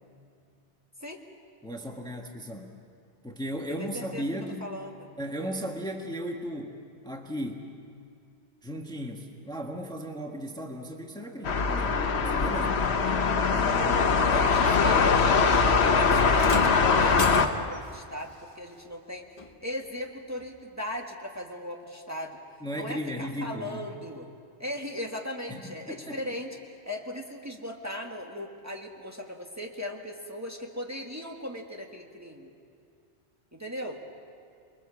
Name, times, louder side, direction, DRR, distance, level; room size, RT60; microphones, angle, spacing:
voice 1, 1.6-2.7 3.2-4.8 5.2-7.7 8.6-12.8 13.5-14.5 22.6-23.9 25.5-26.2, equal, 5° left, 1 dB, 1.5 m, -36 dB
voice 2, 3.8-4.2 4.6-5.1 13.7-14.0 14.3-19.3 19.6-22.4 22.7-24.3 24.6-26.5 26.9-32.5 33.5-34.0, left 1 dB, 15° right, 0 dB, 1.7 m, -38 dB
sound 1, 11.4-17.5, left 5 dB, 70° left, 1.3 m, -22 dB
sound 2, 16.4-17.9 19.4-19.5 20.4-20.5, left 2 dB, 30° left, 1.3 m, -34 dB
28.5 x 22.5 x 7.2 m, 2.3 s
omnidirectional pair, 1.1 m